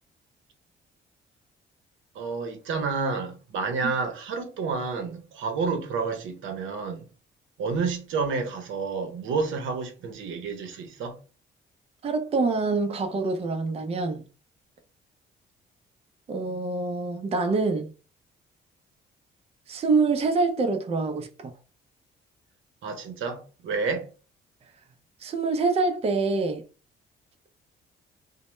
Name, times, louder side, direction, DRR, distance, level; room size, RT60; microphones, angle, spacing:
voice 1, 2.1-7.0 7.6-11.2 22.8-24.1, right 4 dB, 80° right, 0.7 m, -30 dB
voice 2, 12.0-14.2 16.3-17.9 19.7-21.5 25.2-26.6, right 3 dB, 30° right, 0.5 m, -25 dB
2.1 x 2.0 x 3.0 m
cardioid pair, 90°, 20 cm